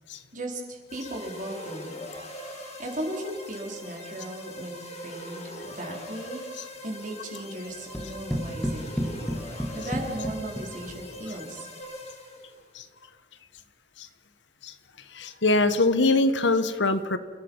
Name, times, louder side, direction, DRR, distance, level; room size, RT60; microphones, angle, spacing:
voice 1, 0.3-1.9 2.2-6.5 6.8-8.9 9.4-11.7, right 1 dB, 45° right, 0 dB, 4.4 m, -37 dB
sound 1, 0.9-12.7, equal, 40° left, 5.0 m, -41 dB
sound 2, 7.9-11.2, equal, ahead, 2.3 m, -32 dB
voice 2, 15.1-17.2, left 2 dB, 80° left, 11 dB, 1.4 m, -23 dB
28.5 x 17.0 x 5.6 m, 1.4 s
head